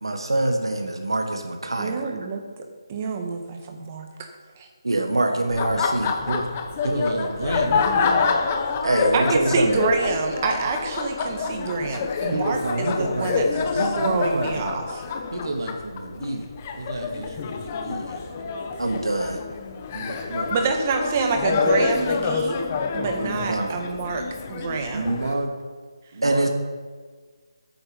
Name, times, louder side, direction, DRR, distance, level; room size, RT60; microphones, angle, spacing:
voice 1, 0.0-2.1 4.8-6.1 8.8-9.9 18.8-19.4 23.5-23.7 26.2-26.5, right 2 dB, 85° right, 4 dB, 1.6 m, -24 dB
voice 2, 1.8-2.5 2.9-4.3 4.6-4.7 9.1-13.4 13.7-14.8 20.5-22.6 22.9-24.2 24.5-25.1, right 4 dB, 25° right, 4 dB, 1.5 m, -27 dB
Laughter, 5.5-25.3, left 5 dB, 25° left, 0.9 m, -27 dB
voice 3, 6.8-8.2 12.3-14.7 15.3-16.5 16.8-18.4 19.9-20.5 23.2-23.5 24.9-25.5 26.1-26.5, right 2 dB, 55° right, 3 dB, 2.2 m, -30 dB
12.5 x 9.0 x 5.2 m, 1.5 s
figure-of-eight pair, 165°, 2 cm